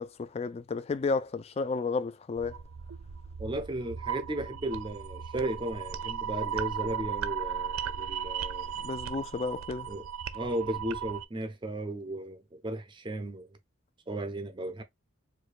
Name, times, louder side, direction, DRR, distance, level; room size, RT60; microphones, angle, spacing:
voice 1, 0.0-2.6 8.8-9.9, left 4 dB, 30° left, 0.3 m, -32 dB
sound 1, 2.4-11.2, right 8 dB, 85° right, 0.4 m, -36 dB
voice 2, 3.4-8.9 9.9-10.1 10.3-13.5 14.1-14.8, right 1 dB, 25° right, 0.5 m, -35 dB
4.6 x 2.2 x 2.4 m
head